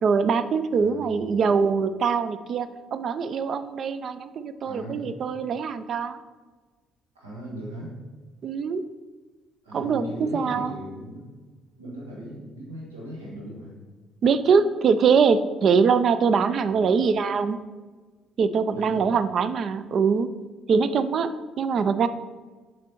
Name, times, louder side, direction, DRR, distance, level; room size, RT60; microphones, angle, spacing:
voice 1, 0.0-6.2 8.4-8.8 9.7-10.8 14.2-17.6 18.4-20.3 20.7-22.1, right 5 dB, 50° right, 13 dB, 0.3 m, -23 dB
voice 2, 0.7-1.3 4.6-5.0 7.1-7.9 9.6-11.3 11.8-13.7 16.6-17.0 18.7-19.1, right 1 dB, 85° right, -5 dB, 1.4 m, -39 dB
7.4 x 5.1 x 2.9 m, 1.3 s
figure-of-eight pair, 45°, 0 cm